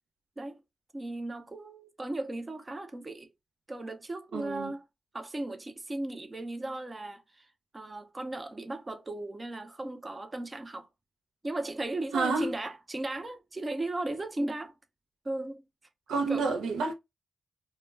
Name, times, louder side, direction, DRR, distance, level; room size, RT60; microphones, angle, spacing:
voice 1, 0.9-3.3 3.7-4.8 5.1-10.9 11.4-14.7 15.2-15.6 16.3-16.5, right 2 dB, 30° right, 0.6 m, -36 dB
voice 2, 4.3-4.7 12.1-12.5 16.1-16.9, right 4 dB, 90° right, 0.5 m, -29 dB
2.2 x 2.1 x 3.2 m
cardioid pair, 60°, 0 cm